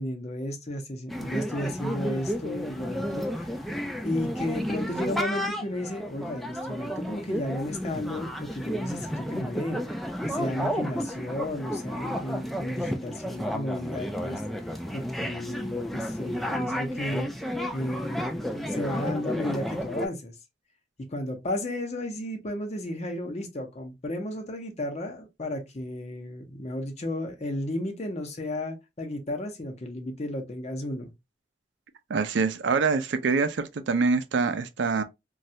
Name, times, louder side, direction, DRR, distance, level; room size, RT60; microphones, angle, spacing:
voice 1, 0.0-3.5 4.0-9.8 10.2-17.3 17.7-20.4 21.1-31.1, left 1 dB, 40° left, 0.7 m, -33 dB
sound 1, 1.1-20.1, equal, ahead, 0.3 m, -32 dB
voice 2, 32.1-35.0, right 4 dB, 80° right, 0.4 m, -25 dB
3.1 x 2.3 x 2.7 m
head